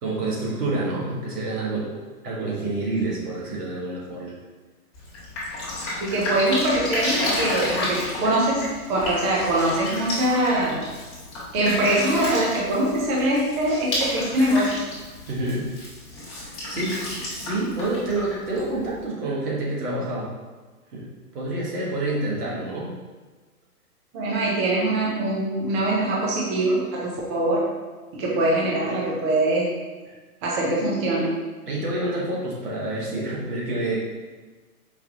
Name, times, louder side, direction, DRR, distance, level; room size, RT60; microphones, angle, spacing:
voice 1, 0.0-4.4 15.3-15.7 16.4-20.3 20.9-22.9 30.1-30.2 31.7-34.0, right 2 dB, 80° right, -5 dB, 1.5 m, -28 dB
Drip, 4.9-19.0, left 1 dB, 30° left, 1.5 m, -31 dB
voice 2, 6.0-10.8 11.5-14.7 24.1-27.6 28.1-29.7 30.4-31.3, right 1 dB, 20° right, -4 dB, 0.5 m, -23 dB
4.8 x 2.8 x 2.4 m, 1.3 s
hypercardioid pair, 130°, 46 cm